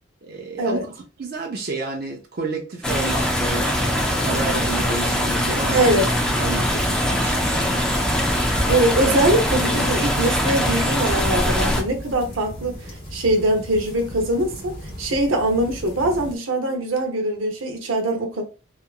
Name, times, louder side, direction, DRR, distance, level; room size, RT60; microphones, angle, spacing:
voice 1, 0.2-6.0 6.4-7.8, right 3 dB, 50° right, 0.5 m, -31 dB
sound 1, 2.8-11.8, equal, 5° left, 0.4 m, -22 dB
sound 2, 4.2-9.8, right 7 dB, 25° right, 0.8 m, -40 dB
voice 2, 5.7-6.1 8.7-12.8 13.1-18.4, right 1 dB, 85° right, 0.8 m, -22 dB
sound 3, 6.4-16.3, equal, 55° left, 1.2 m, -35 dB
2.8 x 2.4 x 2.3 m
head